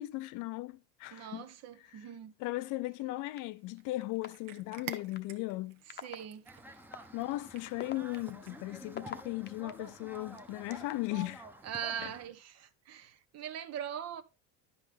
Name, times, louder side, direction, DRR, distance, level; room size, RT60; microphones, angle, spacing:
voice 1, 0.0-1.4 2.4-5.8 7.1-11.5 12.0-12.1, left 19 dB, 65° left, 0.6 m, -37 dB
voice 2, 1.1-2.3 5.9-6.5 11.6-14.2, right 8 dB, 50° right, 0.9 m, -41 dB
sound 1, 3.4-3.5 4.2-4.3 4.9-5.2 5.9-6.2 6.9-7.0 7.6-9.7 10.4-11.1, left 9 dB, 30° left, 0.8 m, -41 dB
Cat, 3.5-8.8, right 10 dB, 75° right, 1.0 m, -51 dB
sound 2, 6.5-12.3, right 1 dB, 5° right, 0.8 m, -50 dB
10.5 x 5.5 x 3.4 m
supercardioid pair, 115°, 33 cm